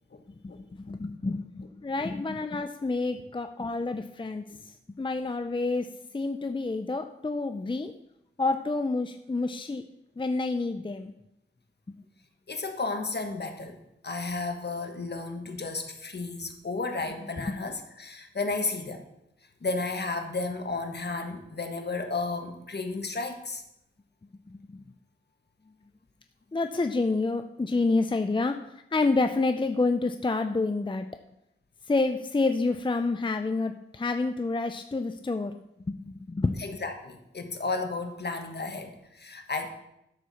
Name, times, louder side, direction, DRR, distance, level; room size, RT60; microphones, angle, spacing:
voice 1, 0.4-5.9 6.1-7.9 8.4-9.8 10.2-11.1 24.5-24.8 26.5-28.6 28.9-31.1 31.9-35.5 35.9-36.6, left 3 dB, 25° left, 7 dB, 0.5 m, -28 dB
voice 2, 12.5-13.8 14.0-19.0 19.6-23.6 36.6-39.7, left 3 dB, 55° left, 5 dB, 1.4 m, -33 dB
12.0 x 4.7 x 7.0 m, 0.83 s
wide cardioid pair, 95°, 21 cm